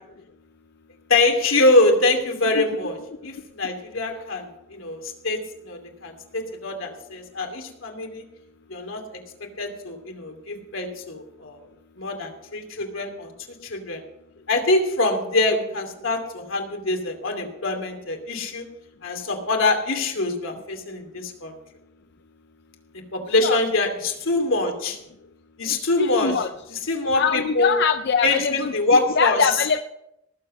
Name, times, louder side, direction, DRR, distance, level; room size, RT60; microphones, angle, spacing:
voice 1, 1.1-3.0 3.2-8.2 8.7-9.2 9.6-11.6 12.0-13.3 13.6-14.0 14.5-18.6 19.0-21.5 23.1-25.0 25.6-26.4 26.7-27.7 28.2-29.5, left 2 dB, 85° left, 3 dB, 2.6 m, -24 dB
voice 2, 26.0-26.5 27.2-28.7 29.2-29.8, left 6 dB, 55° left, 8 dB, 0.6 m, -22 dB
19.0 x 7.7 x 5.4 m, 0.82 s
head